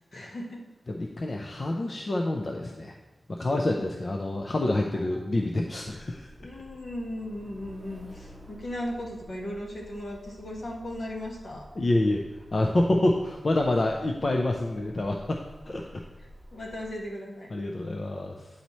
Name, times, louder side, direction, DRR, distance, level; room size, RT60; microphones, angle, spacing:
voice 1, 0.1-0.6 3.4-3.9 4.9-5.0 6.4-11.7 16.5-17.5, left 1 dB, 70° left, -2 dB, 1.4 m, -37 dB
voice 2, 0.9-3.0 3.3-6.3 11.8-12.2 12.5-15.9 17.5-18.5, left 1 dB, 45° left, 1 dB, 0.5 m, -27 dB
Truck, 6.0-17.1, equal, 30° right, 0.5 m, -50 dB
9.2 x 4.2 x 3.1 m, 1.1 s
wide cardioid pair, 100°, 0 cm